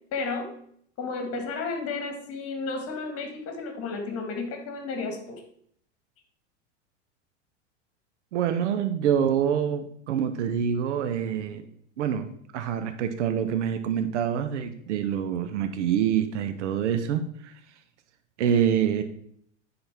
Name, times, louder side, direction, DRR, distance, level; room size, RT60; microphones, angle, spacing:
voice 1, 0.1-0.5 1.0-5.4, left 4 dB, 40° left, 4 dB, 1.8 m, -32 dB
voice 2, 8.3-11.7 12.0-17.5 18.4-19.0, right 8 dB, 75° right, 9 dB, 0.8 m, -26 dB
9.6 x 3.9 x 3.5 m, 0.65 s
hypercardioid pair, 95°, 36 cm